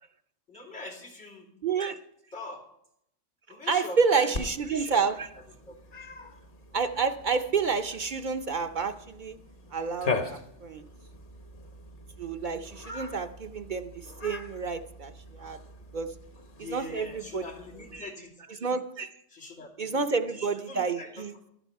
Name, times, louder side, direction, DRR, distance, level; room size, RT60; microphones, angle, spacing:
voice 1, 0.5-1.6 2.3-2.7 3.5-4.5 4.7-5.0 5.7-5.8 6.7-7.1 16.5-18.3 19.3-20.3 20.5-21.3, left 2 dB, 90° left, -4 dB, 3.1 m, -43 dB
voice 2, 1.6-2.0 3.5-5.3 6.7-9.4 9.7-10.8 12.2-15.6 15.9-16.1 16.7-17.4 17.9-18.1 18.6-19.1 19.8-21.3, right 5 dB, 50° right, 8 dB, 0.7 m, -29 dB
Cat, 4.3-18.0, left 4 dB, 45° left, 1.2 m, -41 dB
13.0 x 12.5 x 4.6 m, 0.74 s
omnidirectional pair, 1.2 m